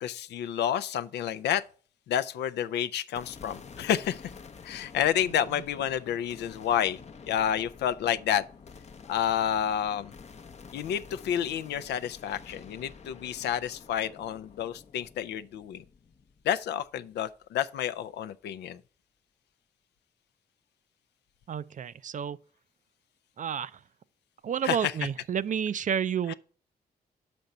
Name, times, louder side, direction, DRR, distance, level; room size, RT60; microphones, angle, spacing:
voice 1, 0.0-1.6 2.1-4.3 4.6-7.0 7.3-8.5 9.1-10.1 10.7-15.8 16.4-18.8 24.6-24.9 26.3-26.4, left 10 dB, 80° left, 0.4 m, -29 dB
sound 1, 3.1-17.4, left 5 dB, 40° left, 0.6 m, -49 dB
voice 2, 21.5-22.4 23.4-23.8 24.4-26.3, right 8 dB, 50° right, 0.4 m, -30 dB
5.8 x 5.2 x 6.5 m
supercardioid pair, 50°, 17 cm